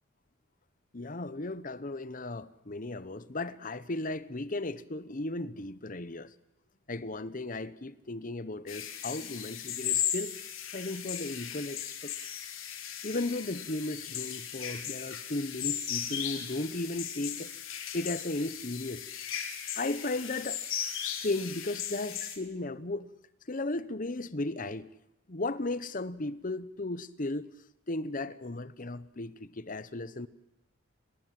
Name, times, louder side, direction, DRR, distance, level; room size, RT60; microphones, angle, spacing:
voice 1, 0.9-6.3 6.9-10.3 10.7-12.1 13.0-17.5 17.9-19.1 19.8-20.6 21.0-23.1 23.5-24.9 25.3-27.5 27.9-30.3, left 2 dB, 40° left, 1.0 m, -35 dB
sound 1, 8.7-22.4, left 9 dB, 80° left, 3.5 m, -37 dB
30.0 x 20.0 x 7.7 m
head